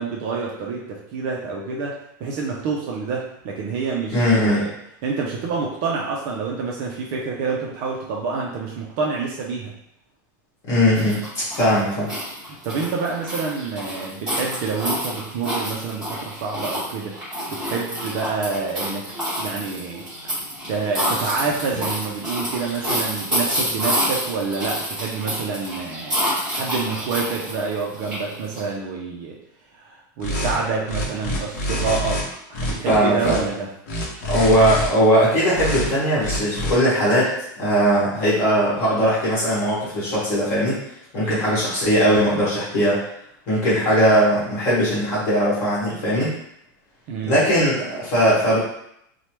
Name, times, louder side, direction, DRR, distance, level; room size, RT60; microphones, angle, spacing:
voice 1, 0.0-4.7 5.0-9.7 12.6-17.2 17.5-19.1 19.4-20.0 20.7-26.2 26.5-29.4 29.7-32.2 32.5-33.7 41.2-41.5 47.1-47.4, right 4 dB, 35° right, -2 dB, 0.3 m, -27 dB
voice 2, 4.1-4.6 10.7-12.1 32.9-33.4 34.3-40.8 41.1-43.0 43.5-46.3 47.2-48.6, equal, 25° left, -8 dB, 1.2 m, -19 dB
sound 1, 10.9-28.6, equal, 5° right, 1.3 m, -28 dB
sound 2, 30.2-30.6 30.9-32.2 32.5-33.4 33.9-34.9 35.5-35.9 36.2-36.7, left 1 dB, 55° left, 0.7 m, -26 dB
3.1 x 2.0 x 2.9 m, 0.75 s
supercardioid pair, 180°, 11 cm